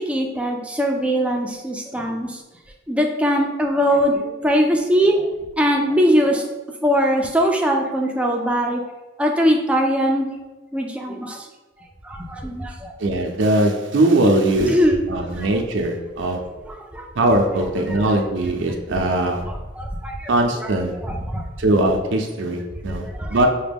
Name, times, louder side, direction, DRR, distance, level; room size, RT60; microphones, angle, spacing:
voice 1, 0.0-2.4 2.9-5.3 5.6-6.4 6.8-8.8 9.2-10.3 10.7-11.5 12.0-12.9 14.7-15.0 15.3-15.5 16.7-17.1 17.9-18.1 19.8-20.3 21.0-21.4 22.9-23.4, equal, 5° right, 1 dB, 0.4 m, -21 dB
voice 2, 13.0-14.8 15.1-16.4 17.2-19.4 20.3-20.9 21.6-23.5, right 1 dB, 75° right, 2 dB, 0.5 m, -20 dB
5.8 x 2.2 x 3.5 m, 1.2 s
head